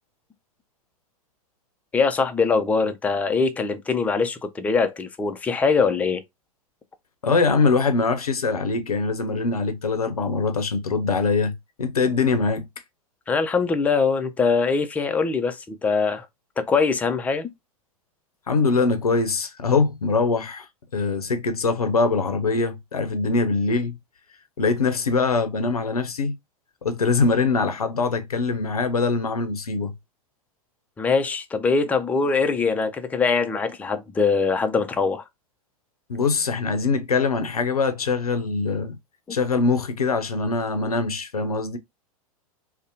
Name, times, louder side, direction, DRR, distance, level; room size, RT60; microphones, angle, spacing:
voice 1, 1.9-6.2 13.3-16.3 16.6-17.5 31.0-35.2 39.3-39.4, left 4 dB, 10° left, 0.3 m, -22 dB
voice 2, 7.2-12.7 18.5-20.7 20.9-24.0 24.6-26.4 26.8-29.9 36.1-39.0 39.3-41.8, left 4 dB, 85° left, 0.5 m, -23 dB
2.6 x 2.1 x 2.6 m
figure-of-eight pair, 95°, 19 cm